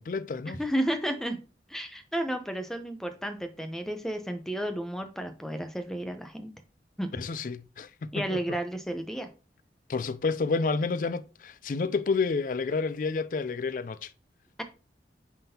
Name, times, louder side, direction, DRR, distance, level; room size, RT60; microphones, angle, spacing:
voice 1, 0.0-0.6 7.1-8.4 9.9-14.1, left 4 dB, 45° left, 0.3 m, -30 dB
voice 2, 0.6-1.4 1.7-6.5 7.0-7.1 8.1-9.3, right 1 dB, 5° left, 0.7 m, -32 dB
9.0 x 3.7 x 2.8 m
head